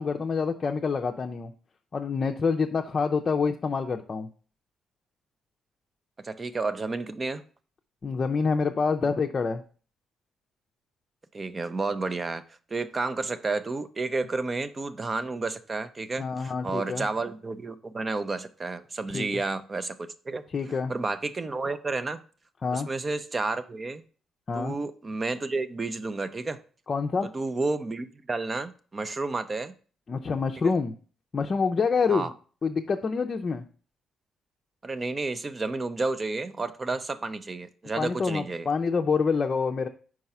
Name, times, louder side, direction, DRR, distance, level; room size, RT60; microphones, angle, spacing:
voice 1, 0.0-1.5 1.9-4.3 8.0-9.6 16.2-17.1 19.1-19.3 20.5-20.9 22.6-22.9 24.5-24.7 26.9-27.3 30.1-30.9 31.3-32.3 32.6-33.6 38.0-39.9, left 5 dB, 40° left, 3 dB, 0.5 m, -27 dB
voice 2, 6.2-7.4 11.3-12.4 12.7-20.4 20.9-22.2 22.7-24.0 24.5-26.6 27.3-29.7 30.6-30.7 32.1-32.3 34.8-38.7, right 3 dB, 30° right, 13 dB, 0.6 m, -31 dB
4.8 x 4.7 x 5.5 m, 0.41 s
cardioid pair, 90°, 0 cm